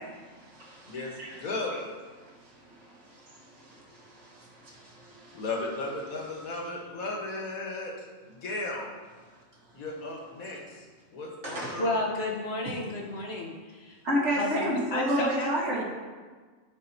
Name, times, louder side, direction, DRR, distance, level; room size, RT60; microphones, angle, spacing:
voice 1, 0.3-1.4 1.7-1.8 2.4-5.4 11.4-11.8 14.0-15.8, equal, 60° right, -5 dB, 2.1 m, -32 dB
voice 2, 1.4-1.7 5.3-7.9 8.3-8.9 9.7-10.9 11.1-12.0, left 2 dB, 90° left, -1 dB, 1.8 m, -35 dB
voice 3, 11.8-14.0 14.3-15.8, left 2 dB, 50° left, -1 dB, 1.3 m, -32 dB
13.5 x 4.7 x 2.9 m, 1.4 s
omnidirectional pair, 1.4 m